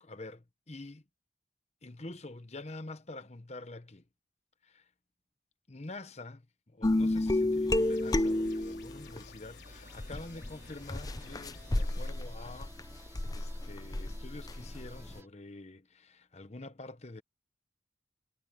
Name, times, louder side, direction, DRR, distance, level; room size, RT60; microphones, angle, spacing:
voice 1, 0.0-1.0 1.8-4.0 4.6-4.9 5.7-17.2, left 2 dB, 35° left, 1.0 m, -47 dB
sound 1, 6.8-9.2 9.9-15.2, left 1 dB, 20° left, 0.5 m, -31 dB
sound 2, 7.7-12.1, left 5 dB, 75° left, 4.1 m, -56 dB
sound 3, 9.6-15.3, right 2 dB, 15° right, 4.1 m, -57 dB
head